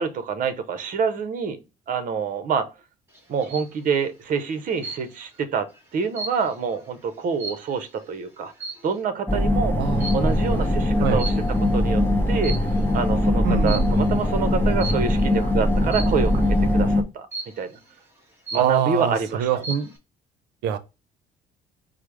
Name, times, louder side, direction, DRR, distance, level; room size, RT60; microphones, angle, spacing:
voice 1, 0.0-1.6 1.9-2.7 3.3-8.5 8.8-9.8 10.1-11.3 11.7-12.0 12.3-12.5 12.9-16.4 16.7-17.3 17.6-17.7 18.5-19.5, right 6 dB, 55° right, 0.7 m, -26 dB
sound 1, 3.1-3.8 4.8-5.3 5.7-8.0 8.5-9.0 10.0-10.4 11.2-11.8 12.3-13.0 13.7-14.0 14.8-15.2 15.9-16.3 17.3-17.8 18.2-18.3 18.5-19.1 19.4-20.0, right 3 dB, 15° right, 1.6 m, -35 dB
sound 2, 9.3-17.0, left 1 dB, 10° left, 0.6 m, -21 dB
voice 2, 9.8-10.4 11.0-11.2 13.4-13.9 18.5-19.9 20.6-20.8, right 8 dB, 85° right, 0.6 m, -24 dB
4.8 x 2.0 x 4.6 m
cardioid pair, 110°, 17 cm